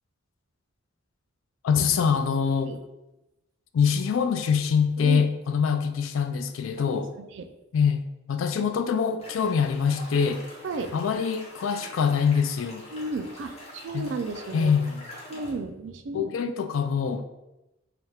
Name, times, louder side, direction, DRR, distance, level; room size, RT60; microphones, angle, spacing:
voice 1, 1.6-2.7 3.7-7.1 7.7-8.0 8.3-10.5 10.9-12.8 13.9-14.1 14.5-15.0 16.1-17.2, left 6 dB, 85° left, 8 dB, 0.4 m, -24 dB
voice 2, 5.0-5.3 6.8-7.5 10.6-11.0 12.9-14.7 15.3-16.5, right 3 dB, 65° right, 8 dB, 0.4 m, -34 dB
sound 1, 9.2-15.5, left 1 dB, 35° left, 0.9 m, -45 dB
3.3 x 2.3 x 4.3 m, 0.94 s
head